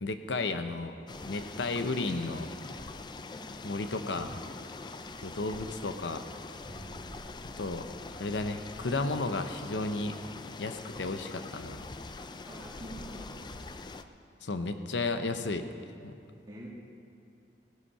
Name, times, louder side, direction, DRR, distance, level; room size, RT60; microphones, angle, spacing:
voice 1, 0.0-1.0 1.2-2.5 3.6-4.4 5.2-6.3 7.6-7.9 8.1-10.2 10.6-11.8 14.4-15.7 16.0-16.2, left 3 dB, 90° left, 8 dB, 0.9 m, -33 dB
sound 1, 1.1-14.0, left 3 dB, 25° left, 0.4 m, -44 dB
sound 2, 2.1-2.2 4.1-4.2 4.8-5.8 6.6-7.9, right 1 dB, 5° right, 3.0 m, -50 dB
voice 2, 12.4-13.5 16.5-16.7, equal, 25° right, -5 dB, 1.7 m, -45 dB
17.0 x 10.0 x 5.6 m, 2.5 s
head